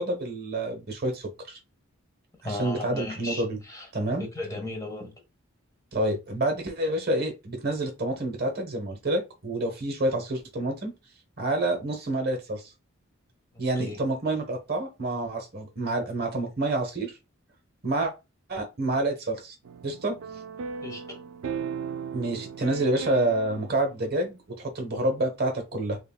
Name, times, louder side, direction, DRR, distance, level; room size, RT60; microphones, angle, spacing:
voice 1, 0.0-1.6 2.4-3.6 3.9-4.3 5.9-10.9 11.4-12.6 13.6-17.2 17.8-18.1 18.5-19.5 19.8-20.2 22.1-26.0, right 1 dB, 50° right, 1.0 m, -28 dB
voice 2, 2.4-3.9 4.2-5.1 13.5-14.0 20.8-21.2, left 2 dB, 15° left, 1.3 m, -36 dB
sound 1, 19.6-24.1, right 6 dB, 80° right, 0.3 m, -37 dB
6.4 x 2.2 x 2.3 m
head